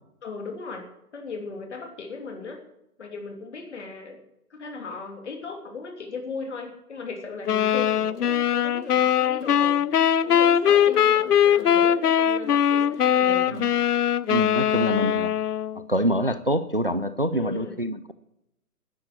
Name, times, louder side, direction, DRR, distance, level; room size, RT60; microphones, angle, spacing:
voice 1, 0.2-0.8 1.1-2.6 3.0-4.2 4.5-13.6 17.3-17.8, left 4 dB, 45° left, 4 dB, 3.1 m, -37 dB
sound 1, 7.5-15.8, left 9 dB, 80° left, 0.8 m, -21 dB
voice 2, 14.3-15.3 15.9-18.1, equal, 40° right, 13 dB, 0.4 m, -26 dB
12.5 x 10.5 x 8.5 m, 0.84 s
hypercardioid pair, 175°, 46 cm